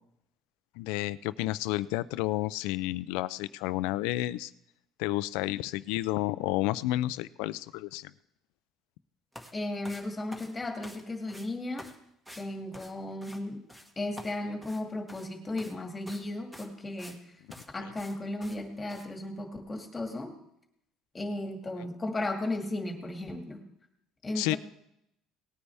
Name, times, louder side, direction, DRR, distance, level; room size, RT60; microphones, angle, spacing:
voice 1, 0.8-4.5 5.0-8.1 17.8-17.9 24.3-24.6, left 17 dB, 85° left, 17 dB, 0.5 m, -31 dB
sound 1, 9.3-9.5 9.8-11.0 11.3-11.5 11.8-12.0 12.3-12.5 12.7-13.4 13.7-13.9 14.2-15.3 15.6-15.8 16.1-16.3 16.5-17.2 17.5-17.7 18.0-18.2 18.4-18.6 18.9-19.0, equal, 5° right, 1.7 m, -47 dB
voice 2, 9.5-11.9 12.4-13.6 14.0-17.2 17.7-20.3 21.1-23.6 24.2-24.6, left 2 dB, 15° left, 4 dB, 2.1 m, -35 dB
19.0 x 9.6 x 3.5 m, 0.78 s
cardioid pair, 125°, 0 cm